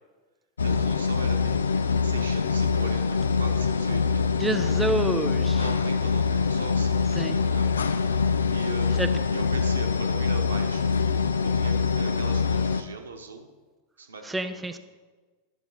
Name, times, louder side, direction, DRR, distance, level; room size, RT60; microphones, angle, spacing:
sound 1, 0.6-12.8, left 5 dB, 70° left, 0.4 m, -24 dB
voice 1, 0.6-1.7 2.0-4.3 5.6-7.7 8.5-8.9 9.3-10.9 11.4-13.5 14.0-14.8, right 4 dB, 70° right, 5 dB, 1.1 m, -39 dB
voice 2, 4.4-5.6 7.2-7.4 9.0-9.1 14.2-14.8, right 2 dB, 10° right, 8 dB, 0.4 m, -28 dB
12.0 x 6.8 x 4.1 m, 1.3 s
figure-of-eight pair, 90°, 0 cm